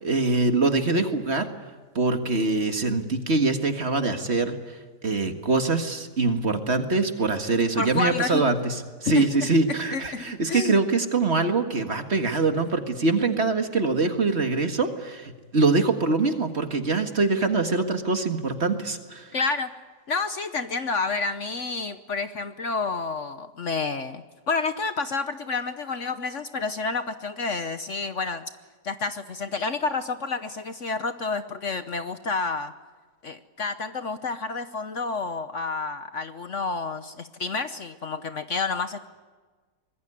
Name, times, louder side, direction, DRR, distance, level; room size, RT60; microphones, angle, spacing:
voice 1, 0.0-1.5 2.0-8.8 9.0-19.3, right 3 dB, 40° right, 6 dB, 1.9 m, -24 dB
voice 2, 7.8-8.4 9.0-9.2 9.7-10.8 19.3-19.7 20.1-28.4 28.8-32.7 33.2-39.1, left 4 dB, 50° left, 10 dB, 1.2 m, -29 dB
25.0 x 21.0 x 9.9 m, 1.4 s
omnidirectional pair, 1.8 m